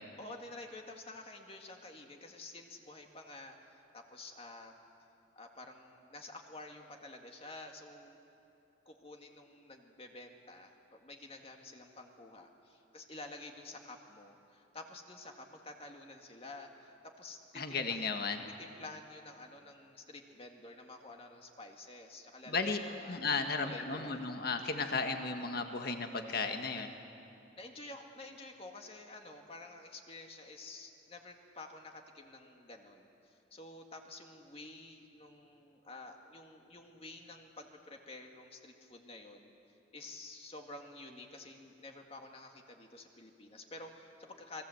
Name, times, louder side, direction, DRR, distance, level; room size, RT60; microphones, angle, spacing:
voice 1, 0.2-4.8 5.4-8.2 8.9-23.2 23.6-24.3 27.6-39.5 39.9-44.6, left 2 dB, 30° left, 3 dB, 2.0 m, -50 dB
voice 2, 17.6-18.4 22.5-22.8 23.1-26.9, left 4 dB, 55° left, 5 dB, 1.7 m, -34 dB
28.5 x 21.0 x 7.9 m, 2.8 s
head